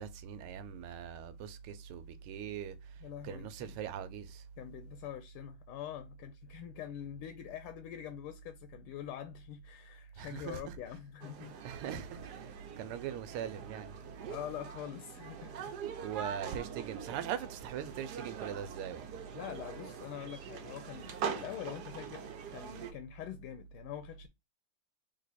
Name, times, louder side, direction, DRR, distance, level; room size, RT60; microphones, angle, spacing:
voice 1, 0.0-4.4 10.2-10.7 11.6-13.9 16.0-19.2, right 9 dB, 85° right, 1.5 m, -41 dB
voice 2, 3.0-3.8 4.6-11.6 14.3-15.7 19.3-24.3, left 11 dB, 80° left, 1.4 m, -45 dB
sound 1, 11.2-22.9, right 7 dB, 65° right, 1.0 m, -43 dB
3.7 x 3.0 x 4.1 m
omnidirectional pair, 2.4 m